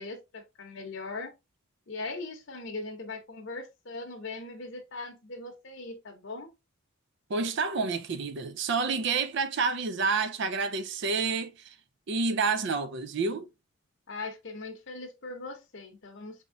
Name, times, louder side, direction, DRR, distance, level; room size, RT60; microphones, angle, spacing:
voice 1, 0.0-1.3 1.9-6.5 14.1-16.4, left 3 dB, 55° left, 0.8 m, -40 dB
voice 2, 7.3-11.7 12.1-13.5, right 4 dB, 50° right, 0.4 m, -29 dB
4.2 x 3.5 x 2.5 m
head